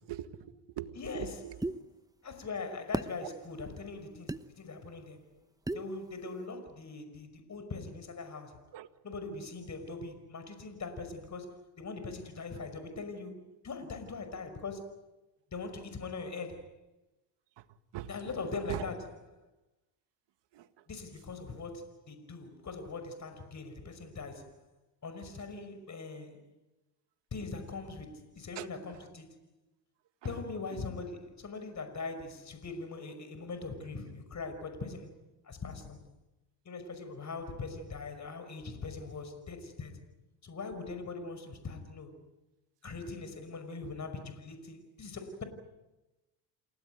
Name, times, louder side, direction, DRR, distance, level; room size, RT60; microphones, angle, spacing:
voice 1, 0.0-1.6 3.2-3.3 8.7-8.9 17.6-17.7 17.9-18.1 18.7-18.9 20.5-20.9 21.5-21.6 28.6-28.7 28.9-29.1 30.2-30.8, right 12 dB, 65° right, 2.0 m, -43 dB
voice 2, 1.0-1.3 2.2-5.4 5.7-8.7 9.0-15.0 15.5-16.7 18.1-19.0 20.9-24.6 25.0-26.5 27.3-29.4 30.2-35.1 35.4-36.0 36.7-40.0 40.4-42.2 42.8-45.4, left 3 dB, 35° left, 5.6 m, -41 dB
sound 1, 1.6-1.8 2.9-3.1 4.3-4.4 5.7-5.9, right 2 dB, 10° right, 1.1 m, -33 dB
29.0 x 17.5 x 9.4 m
supercardioid pair, 75°, 46 cm